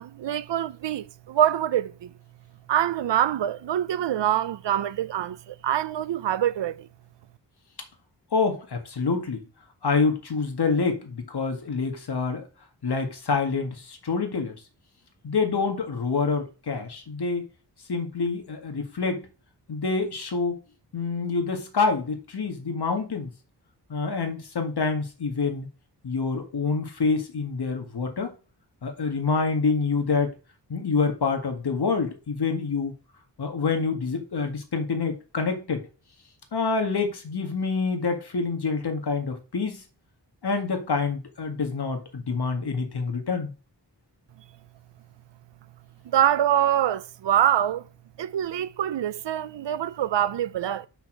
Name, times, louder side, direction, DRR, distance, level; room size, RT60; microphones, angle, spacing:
voice 1, 0.0-2.1 2.7-6.9 46.0-47.8 48.2-50.9, right 11 dB, 90° right, 0.6 m, -25 dB
voice 2, 8.3-9.4 9.8-12.4 12.8-14.5 15.2-17.4 17.9-19.3 19.7-20.6 20.9-23.3 23.9-25.7 26.0-28.3 28.8-30.3 30.7-32.9 33.4-35.8 36.5-39.8 40.4-43.5, left 4 dB, 65° left, 2.0 m, -27 dB
6.3 x 5.7 x 6.2 m
wide cardioid pair, 100°, 42 cm